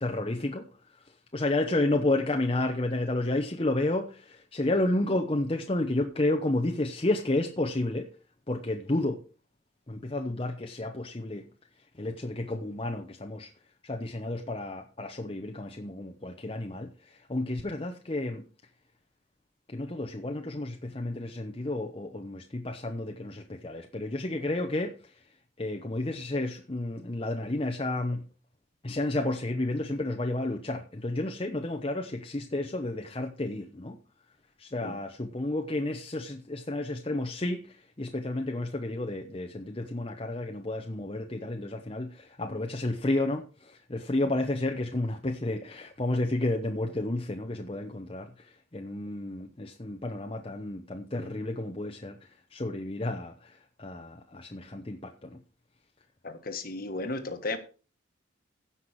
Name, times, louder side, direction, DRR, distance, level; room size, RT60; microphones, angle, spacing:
voice 1, 0.0-1.0 1.3-8.1 8.5-9.2 9.9-11.5 12.0-13.5 13.8-18.5 19.7-25.1 25.6-28.2 28.8-34.0 34.6-55.4, left 2 dB, 30° left, 0.9 m, -31 dB
voice 2, 56.2-57.6, left 2 dB, 45° left, 1.5 m, -34 dB
16.0 x 5.9 x 4.7 m
head